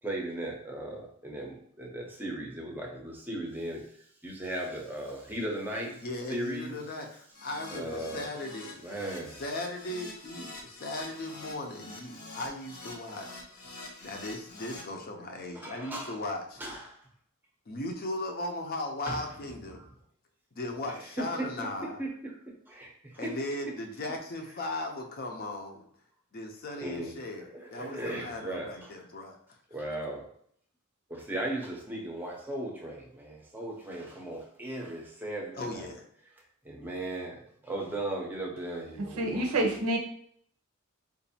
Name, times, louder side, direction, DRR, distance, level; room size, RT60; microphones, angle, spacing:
voice 1, 0.0-6.0 6.3-6.8 7.7-8.3 8.8-9.4 14.0-14.1 15.5-16.2 16.6-17.0 19.1-19.4 19.7-19.9 20.8-23.4 26.8-27.1 27.4-29.1 29.7-30.3 31.1-35.9 36.3-39.6, right 1 dB, 10° right, 0 dB, 0.6 m, -37 dB
voice 2, 6.0-8.8 9.4-13.4 14.0-16.6 17.7-19.9 20.5-22.0 23.2-25.8 26.3-29.4 35.5-36.0, left 2 dB, 45° left, 3 dB, 0.5 m, -37 dB
Keyboard (musical), 7.3-14.8, left 3 dB, 90° left, 0.9 m, -46 dB
voice 3, 39.2-40.0, right 1 dB, 80° right, 2 dB, 0.7 m, -27 dB
3.9 x 2.6 x 2.7 m, 0.64 s
head